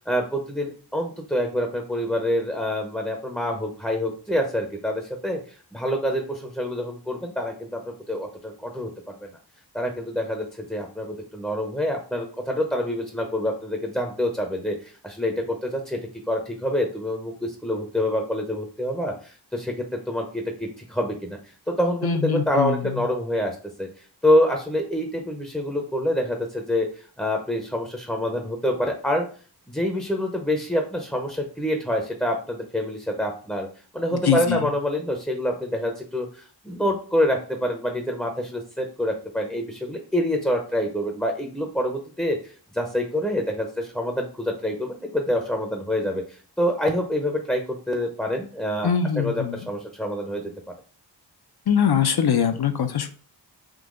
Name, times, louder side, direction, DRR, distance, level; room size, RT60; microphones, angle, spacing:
voice 1, 0.1-9.2 9.7-16.0 16.3-21.4 21.7-23.9 24.2-26.9 27.2-29.3 29.7-33.7 33.9-48.9 49.2-50.5, left 1 dB, 5° left, 2 dB, 0.6 m, -26 dB
voice 2, 22.0-23.1 34.1-34.7 48.8-49.7 51.7-53.1, left 7 dB, 65° left, 8 dB, 0.6 m, -23 dB
3.8 x 2.8 x 3.7 m, 0.41 s
wide cardioid pair, 70°, 42 cm